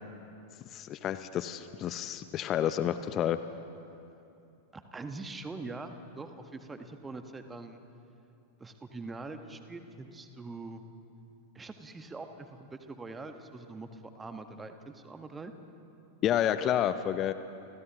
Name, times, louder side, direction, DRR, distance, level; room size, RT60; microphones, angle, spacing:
voice 1, 0.7-3.4 16.2-17.3, left 10 dB, 30° left, 12 dB, 0.7 m, -29 dB
voice 2, 4.7-7.8 8.6-10.8 11.5-15.5, right 3 dB, 15° right, 7 dB, 1.5 m, -43 dB
30.0 x 29.5 x 3.1 m, 2.8 s
figure-of-eight pair, 90°, 0 cm